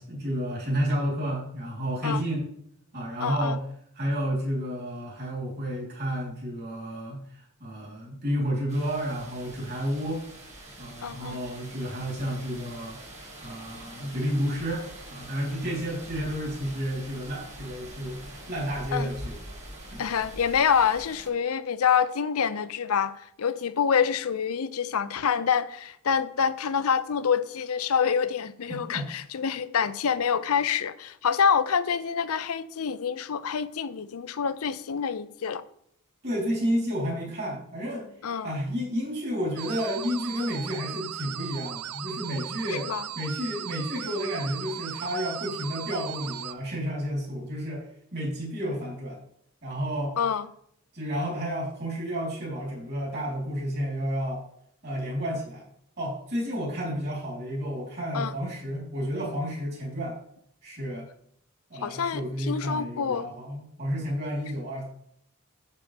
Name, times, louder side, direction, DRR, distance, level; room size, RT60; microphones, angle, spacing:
voice 1, 0.0-2.5 2.9-3.6 4.0-10.2 10.8-13.0 13.4-14.8 15.1-19.4 19.9-20.0 28.7-29.1 36.2-38.1 38.4-42.9 43.2-49.2 49.6-50.1 50.9-54.4 54.8-55.7 56.0-60.2 60.6-61.1 61.7-64.8, equal, 45° right, 3.5 m, -31 dB
voice 2, 3.2-3.6 11.0-11.4 18.9-19.1 20.0-23.1 23.4-35.6 38.2-38.5 42.7-43.0 50.2-50.5 58.1-58.3 61.8-63.3, left 7 dB, 70° left, 0.5 m, -26 dB
sound 1, 8.7-21.3, right 1 dB, 30° right, 1.9 m, -44 dB
sound 2, 39.6-46.5, right 10 dB, 85° right, 0.4 m, -37 dB
8.3 x 7.5 x 3.4 m
head